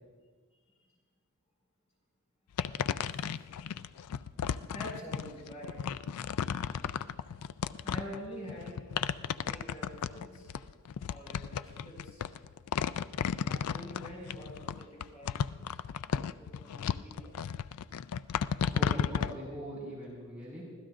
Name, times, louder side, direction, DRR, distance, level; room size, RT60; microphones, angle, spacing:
sound 1, 2.6-19.3, left 7 dB, 85° left, 0.4 m, -34 dB
voice 1, 4.7-5.8 7.8-8.8 9.3-10.5 11.1-12.3 13.5-15.4 16.4-17.3, equal, 30° left, -4 dB, 5.7 m, -46 dB
voice 2, 18.7-20.6, right 1 dB, 5° right, -6 dB, 5.7 m, -41 dB
25.0 x 16.0 x 2.6 m, 1.5 s
head